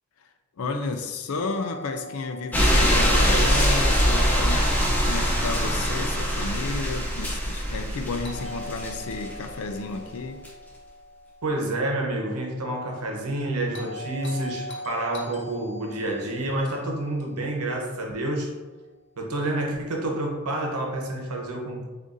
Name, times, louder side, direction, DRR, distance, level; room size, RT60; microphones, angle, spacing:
voice 1, 0.6-4.7 5.1-10.4, left 3 dB, 75° left, 7 dB, 0.4 m, -32 dB
Doorbell, 1.4-5.4 8.2-12.4 13.7-18.1, left 1 dB, 50° left, 0.7 m, -42 dB
sound 1, 2.5-9.4 10.4-10.5, equal, 5° left, 0.6 m, -23 dB
voice 2, 11.4-18.5 19.2-21.8, right 1 dB, 85° right, 0 dB, 0.9 m, -28 dB
6.1 x 2.6 x 2.6 m, 1.3 s
head